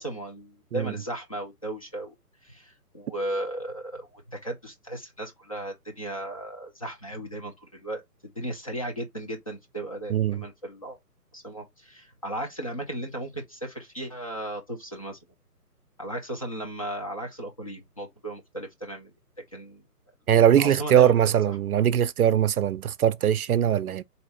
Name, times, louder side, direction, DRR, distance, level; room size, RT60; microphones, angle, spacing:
voice 1, 0.0-2.1 2.4-8.0 8.4-11.0 11.3-15.2 16.0-19.1 19.5-19.8 20.6-21.4, right 1 dB, 25° left, 0.5 m, -36 dB
voice 2, 10.1-10.4 20.3-24.0, right 10 dB, 65° right, 0.5 m, -21 dB
4.0 x 2.8 x 3.2 m
hypercardioid pair, 155°, 47 cm